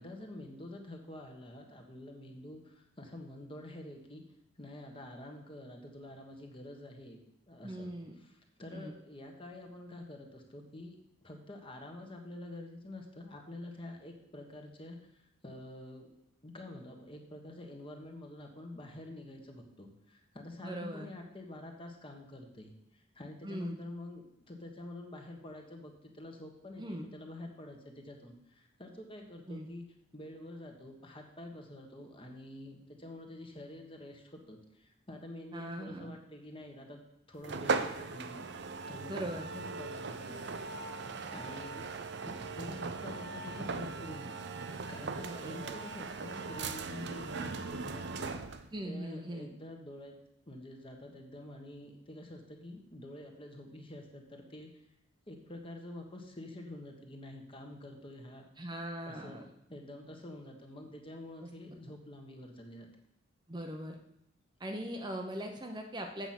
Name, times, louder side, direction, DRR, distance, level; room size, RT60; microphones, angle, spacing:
voice 1, 0.0-4.2 4.6-7.2 7.5-10.9 11.2-16.1 16.4-29.9 30.1-37.0 37.3-38.5 38.9-41.9 42.2-44.4 44.9-48.5 48.8-50.2 50.5-54.8 55.3-58.4 59.1-62.9, left 1 dB, 25° left, 3 dB, 1.4 m, -48 dB
voice 2, 7.6-8.1 8.7-8.9 20.6-21.1 23.4-23.8 26.8-27.0 29.5-29.7 35.5-36.1 39.1-39.5 45.2-45.8 48.7-49.5 58.6-59.4 61.4-61.5 63.5-64.0 64.6-66.3, right 1 dB, 20° right, 3 dB, 0.8 m, -40 dB
sound 1, 37.4-48.7, right 4 dB, 55° right, 0.6 m, -39 dB
8.1 x 7.0 x 6.0 m, 0.80 s
head